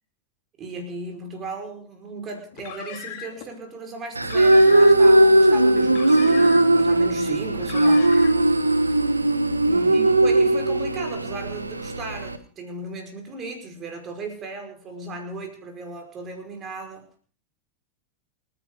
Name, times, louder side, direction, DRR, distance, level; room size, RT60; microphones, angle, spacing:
voice 1, 0.6-8.2 9.7-17.1, right 3 dB, 30° right, 4 dB, 5.1 m, -36 dB
Car, 2.5-3.5 4.2-5.1 5.8-6.9 7.5-8.5, left 11 dB, 50° left, 2.2 m, -39 dB
sound 1, 4.2-12.4, right 1 dB, 80° right, 1.2 m, -18 dB
28.5 x 10.5 x 3.8 m, 0.38 s
figure-of-eight pair, 90°, 0 cm